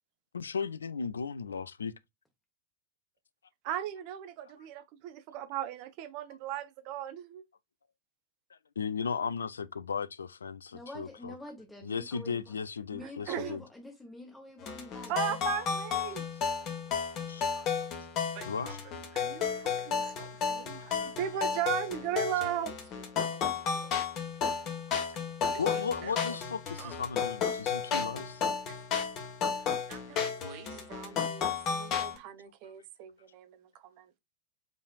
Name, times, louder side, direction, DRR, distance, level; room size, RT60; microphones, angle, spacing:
voice 1, 0.3-1.9 8.8-11.3 11.8-13.6 16.2-16.3 17.0-17.4 17.8-17.9 18.5-18.8 20.7-21.1 24.2-24.3 24.6-24.7 25.6-28.4 29.8-29.9 31.4-31.5 32.6-32.7, left 6 dB, 70° left, 0.3 m, -36 dB
voice 2, 3.6-7.4 13.0-13.6 15.1-16.2 17.4-17.9 18.3-18.8 19.1-23.9 25.5-26.4 26.8-27.0 28.7-28.8 29.9-34.1, right 11 dB, 45° right, 0.7 m, -38 dB
voice 3, 10.7-12.5 12.9-15.5, left 1 dB, 10° left, 1.2 m, -47 dB
sound 1, 14.6-32.2, left 6 dB, 35° left, 1.4 m, -33 dB
5.1 x 3.3 x 2.4 m
figure-of-eight pair, 90°, 0 cm